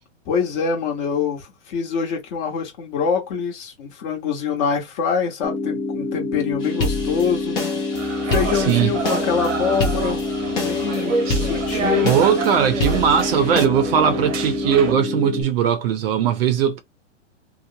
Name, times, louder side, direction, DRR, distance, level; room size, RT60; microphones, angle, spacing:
voice 1, 0.3-7.6 8.3-10.2 10.6-12.2, left 6 dB, 40° left, 1.1 m, -24 dB
sound 1, 5.4-15.4, left 3 dB, 5° right, 0.9 m, -27 dB
sound 2, 6.6-13.7, left 3 dB, 10° left, 0.3 m, -28 dB
sound 3, 7.9-14.9, right 5 dB, 85° right, 0.9 m, -28 dB
voice 2, 12.0-16.8, right 8 dB, 50° right, 0.6 m, -19 dB
2.9 x 2.0 x 2.7 m
hypercardioid pair, 140°, 36 cm